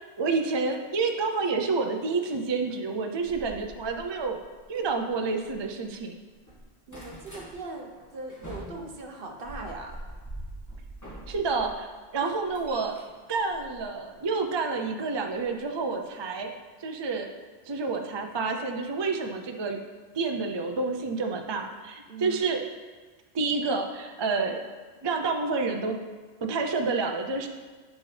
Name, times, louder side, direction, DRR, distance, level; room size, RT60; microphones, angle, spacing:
voice 1, 0.2-4.4 4.7-6.2 11.3-13.0 13.3-16.5 16.8-17.3 17.7-19.8 20.1-22.6 23.3-24.7 25.0-26.0 26.4-27.5, right 4 dB, 40° right, 4 dB, 0.4 m, -29 dB
sound 1, 3.2-6.0 6.3-7.5 8.0-11.7 12.1-14.3 15.4-15.6 16.0-16.1 16.4-16.5, right 1 dB, 15° left, 1.7 m, -44 dB
voice 2, 6.9-10.0 12.2-12.3 22.1-22.4, right 3 dB, 55° right, 2 dB, 1.0 m, -40 dB
8.4 x 6.2 x 3.3 m, 1.4 s
omnidirectional pair, 1.1 m